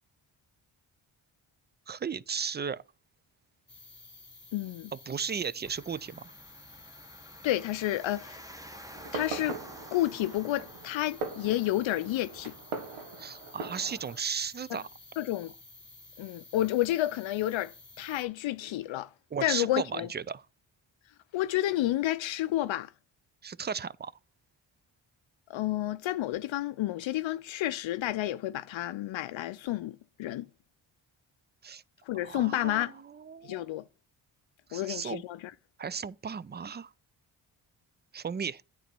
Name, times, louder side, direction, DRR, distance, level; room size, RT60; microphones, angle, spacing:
voice 1, 1.9-2.8 4.9-6.3 13.2-14.9 19.3-20.4 23.4-24.1 31.6-31.8 32.2-33.8 34.7-35.2 35.8-36.9 38.1-38.6, right 6 dB, 25° right, 0.3 m, -35 dB
sound 1, 3.7-18.2, left 3 dB, 20° left, 1.8 m, -53 dB
voice 2, 4.5-4.9 7.4-8.4 9.1-9.6 9.9-12.5 14.7-14.8 15.2-15.5 16.2-19.1 19.4-20.1 21.3-22.9 25.5-30.5 32.1-32.9 33.4-33.8 34.7-35.5, left 14 dB, 65° left, 0.5 m, -30 dB
sound 2, 5.7-12.6, equal, 5° right, 1.1 m, -51 dB
Fireworks, 8.9-14.2, right 4 dB, 80° right, 1.4 m, -41 dB
9.2 x 4.1 x 6.0 m
supercardioid pair, 55°, 50 cm